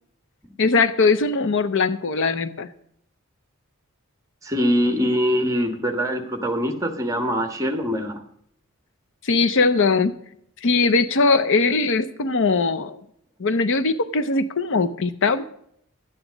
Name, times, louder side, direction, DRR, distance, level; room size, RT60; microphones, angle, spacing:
voice 1, 0.6-2.7 9.2-10.1 10.6-13.0 13.4-15.4, left 4 dB, 60° left, 13 dB, 0.7 m, -20 dB
voice 2, 4.4-8.2, equal, 15° right, 7 dB, 1.4 m, -23 dB
12.0 x 9.1 x 5.1 m, 0.69 s
head